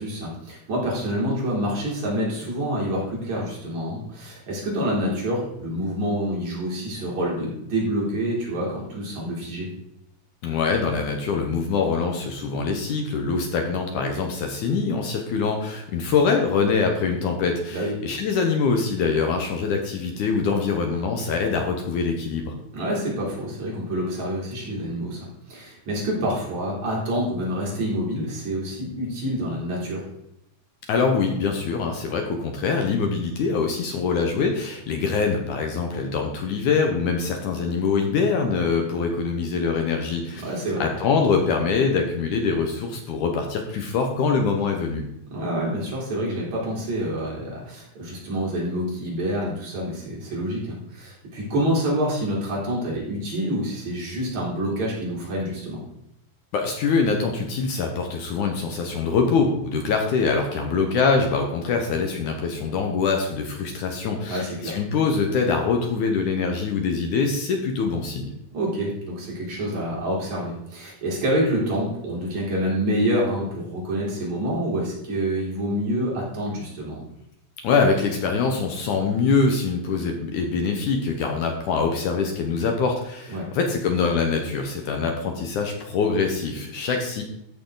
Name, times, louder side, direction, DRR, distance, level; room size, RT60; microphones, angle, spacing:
voice 1, 0.0-9.7 17.7-17.9 22.7-30.0 40.4-40.9 45.3-55.8 64.3-64.8 68.5-77.0 83.3-83.5, equal, 50° right, -5 dB, 4.8 m, -27 dB
voice 2, 10.4-22.6 30.9-40.5 40.8-45.0 56.5-68.3 77.6-87.2, left 5 dB, 65° left, 3 dB, 2.3 m, -24 dB
14.0 x 6.7 x 3.9 m, 0.81 s
omnidirectional pair, 4.1 m